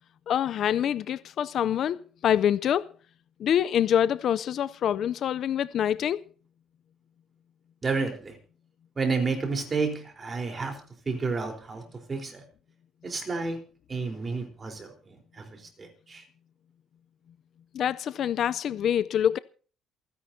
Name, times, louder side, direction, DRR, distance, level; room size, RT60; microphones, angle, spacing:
voice 1, 0.3-2.9 3.4-6.2 17.7-19.4, left 9 dB, 50° left, 0.5 m, -25 dB
voice 2, 7.8-8.4 9.0-10.8 11.1-11.8 12.1-12.4 13.0-13.6 13.9-16.2, right 4 dB, 25° right, 3.9 m, -31 dB
28.0 x 10.5 x 2.8 m
cardioid pair, 150°, 0 cm